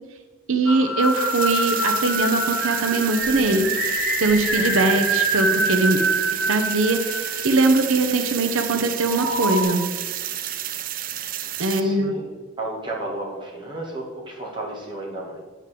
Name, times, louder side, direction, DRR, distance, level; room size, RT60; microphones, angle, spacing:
voice 1, 0.5-6.0 6.4-9.9 11.6-12.1, right 2 dB, 90° right, 7 dB, 0.9 m, -21 dB
sound 1, 0.7-7.9 9.0-9.6, right 1 dB, 5° left, 2.8 m, -25 dB
sound 2, 1.0-11.8, right 12 dB, 45° right, 0.5 m, -31 dB
voice 2, 4.5-5.0 11.5-12.3 12.6-15.5, right 2 dB, 25° right, -3 dB, 2.2 m, -33 dB
9.2 x 5.3 x 7.5 m, 1.4 s
head